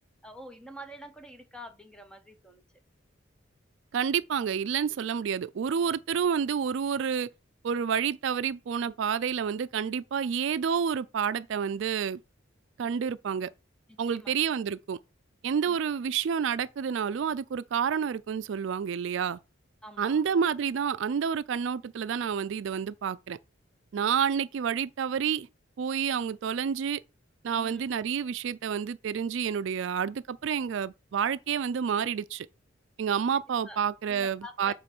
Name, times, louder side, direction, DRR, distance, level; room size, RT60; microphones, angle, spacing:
voice 1, 0.2-2.6 13.9-14.3 15.7-15.8 19.8-20.2 27.5-27.8 33.7-33.8 34.1-34.7, equal, 5° left, 0.7 m, -46 dB
voice 2, 3.9-7.3 7.6-12.2 12.8-13.5 14.0-15.0 15.4-19.4 20.0-23.4 23.9-25.5 25.8-27.0 27.4-32.5 33.0-34.7, right 7 dB, 65° right, 0.3 m, -29 dB
7.7 x 3.1 x 6.0 m
head